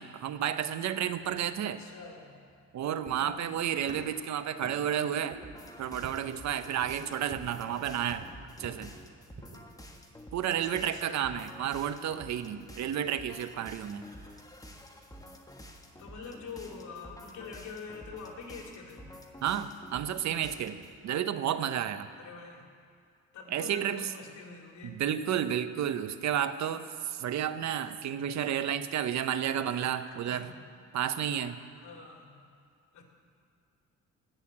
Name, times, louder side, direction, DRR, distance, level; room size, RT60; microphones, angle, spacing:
voice 1, 0.0-1.8 2.7-5.4 5.8-8.3 8.6-8.9 10.3-14.1 19.4-20.8 21.0-22.1 23.5-24.1 24.8-30.5 30.9-31.6, right 9 dB, 65° right, 12 dB, 0.8 m, -31 dB
sound 1, 1.0-9.7, right 3 dB, 40° right, 2.8 m, -51 dB
voice 2, 1.6-2.4 3.2-3.5 10.4-11.4 16.0-19.1 22.1-22.7 23.3-25.2 30.1-30.6 31.8-32.4 32.9-33.0, left 5 dB, 70° left, 1 dB, 2.7 m, -45 dB
sound 2, 5.4-21.0, equal, 10° left, 1.5 m, -50 dB
18.5 x 6.5 x 8.5 m, 2.2 s
cardioid pair, 90°, 30 cm